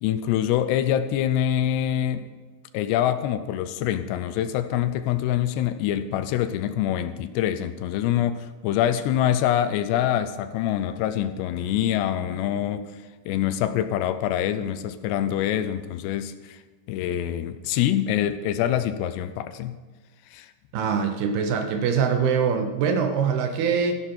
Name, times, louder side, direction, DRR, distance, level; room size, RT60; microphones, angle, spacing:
voice 1, 0.0-2.2 2.7-12.9 13.3-16.6 16.9-19.8 20.3-20.5, left 11 dB, 80° left, 11 dB, 2.8 m, -25 dB
voice 2, 20.7-24.0, right 6 dB, 75° right, 5 dB, 2.8 m, -23 dB
14.5 x 11.0 x 4.4 m, 1.3 s
omnidirectional pair, 5.0 m